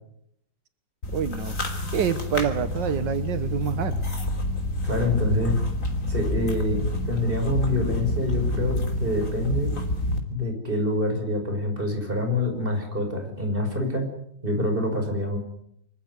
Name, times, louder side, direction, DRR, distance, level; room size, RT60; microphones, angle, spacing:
sound 1, 1.0-10.2, left 1 dB, 45° left, 3.5 m, -28 dB
voice 1, 1.1-1.6 1.9-4.0, right 8 dB, 85° right, 12 dB, 1.8 m, -27 dB
voice 2, 4.8-5.5 6.1-9.7 10.3-14.1 14.4-15.4, left 1 dB, 30° right, 4 dB, 5.6 m, -26 dB
25.5 x 14.5 x 9.6 m, 0.76 s
omnidirectional pair, 1.9 m